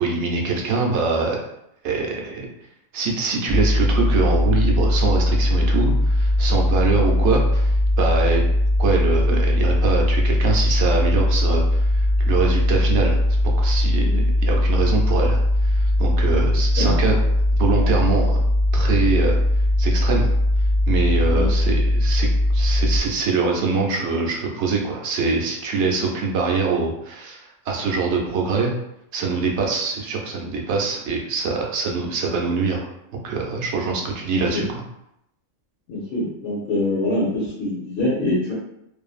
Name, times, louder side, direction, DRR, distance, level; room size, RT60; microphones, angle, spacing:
voice 1, 0.0-1.4 1.8-2.5 2.9-8.4 8.8-13.2 13.4-17.2 17.6-18.4 18.7-19.4 19.8-20.3 20.9-22.3 22.5-28.7 29.1-32.9 33.1-34.8, right 4 dB, 65° right, 0 dB, 0.8 m, -24 dB
sound 1, 3.5-23.0, left 1 dB, ahead, 0.6 m, -19 dB
voice 2, 35.9-38.5, left 1 dB, 70° left, -6 dB, 1.1 m, -24 dB
2.6 x 2.5 x 2.3 m, 0.80 s
omnidirectional pair, 1.4 m